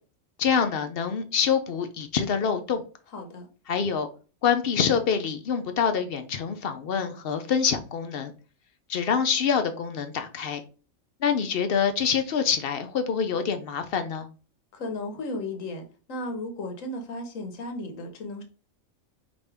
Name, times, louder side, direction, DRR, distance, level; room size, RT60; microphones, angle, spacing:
voice 1, 0.4-2.8 3.7-4.1 4.4-8.3 8.9-10.6 11.2-14.3, left 7 dB, 60° left, 0.7 m, -26 dB
voice 2, 3.1-3.5 14.7-18.4, left 2 dB, 80° left, 1.3 m, -35 dB
5.0 x 2.6 x 3.3 m
omnidirectional pair, 1.3 m